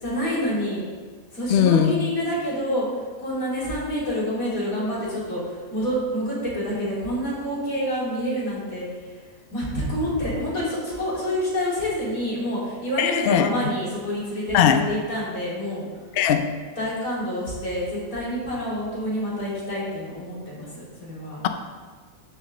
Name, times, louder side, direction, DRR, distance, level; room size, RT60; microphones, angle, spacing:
voice 1, 0.0-0.8 1.3-2.9 3.2-8.9 9.5-15.9 16.8-21.4, equal, 60° left, -7 dB, 3.4 m, -27 dB
voice 2, 1.5-1.9 13.0-13.5 14.5-14.8 16.2-16.5, left 9 dB, 80° left, 7 dB, 0.5 m, -18 dB
14.0 x 5.2 x 3.8 m, 1.5 s
omnidirectional pair, 1.7 m